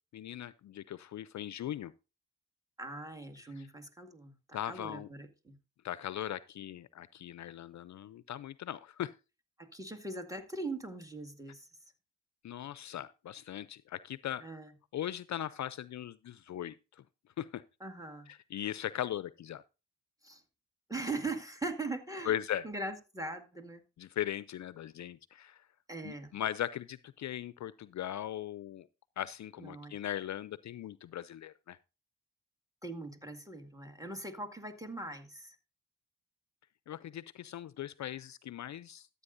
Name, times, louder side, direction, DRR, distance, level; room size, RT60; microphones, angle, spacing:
voice 1, 0.1-1.9 3.6-3.7 4.5-5.1 5.8-9.1 12.4-14.4 14.9-16.7 17.4-17.6 18.3-19.6 22.3-22.7 24.0-25.6 26.0-28.9 29.2-31.8 36.9-39.1, left 11 dB, 55° left, 0.5 m, -39 dB
voice 2, 2.8-5.6 9.6-11.7 14.4-14.7 17.8-18.3 20.2-20.4 20.9-22.4 22.6-23.8 25.9-26.4 29.6-29.9 32.8-35.6, right 2 dB, 10° right, 2.0 m, -41 dB
14.0 x 8.5 x 2.6 m
supercardioid pair, 45°, 35 cm